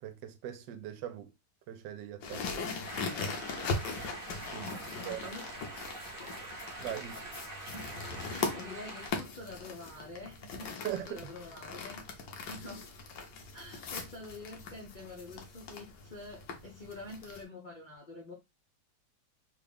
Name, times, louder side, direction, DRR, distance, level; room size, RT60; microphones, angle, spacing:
voice 1, 0.0-1.3 1.7-3.2 4.5-4.8 5.1-5.3 6.8-7.2 10.8-11.3, right 11 dB, 90° right, 1.3 m, -41 dB
sound 1, 2.2-17.4, left 4 dB, 80° left, 1.4 m, -40 dB
sound 2, 2.8-9.1, right 2 dB, 40° right, 0.9 m, -44 dB
voice 2, 4.6-5.4 6.2-6.4 7.7-7.8 8.3-12.9 13.5-18.3, left 2 dB, 55° left, 0.5 m, -47 dB
3.7 x 2.3 x 3.4 m
omnidirectional pair, 1.9 m